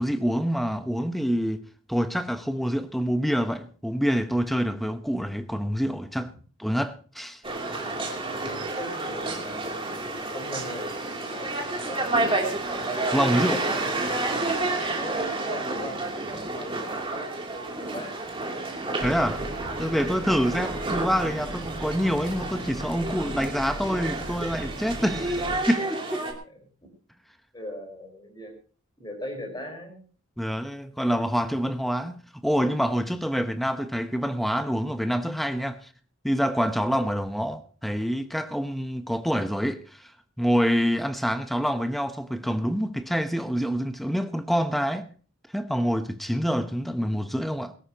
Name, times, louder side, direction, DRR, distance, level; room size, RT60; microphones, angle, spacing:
voice 1, 0.0-6.3 6.6-7.4 13.1-13.6 19.0-19.4 19.8-26.3 30.4-35.8 36.2-40.1 40.4-45.1 45.5-47.7, equal, ahead, 0.9 m, -26 dB
sound 1, 7.4-26.3, right 2 dB, 25° right, 3.0 m, -30 dB
voice 2, 8.4-9.5 10.3-12.1 13.2-14.1 14.9-16.0 16.5-18.3 26.4-26.6 27.5-28.5 29.0-30.0, left 1 dB, 20° left, 4.8 m, -39 dB
sound 2, 19.0-25.6, right 1 dB, 50° right, 4.5 m, -38 dB
21.5 x 13.5 x 3.0 m
head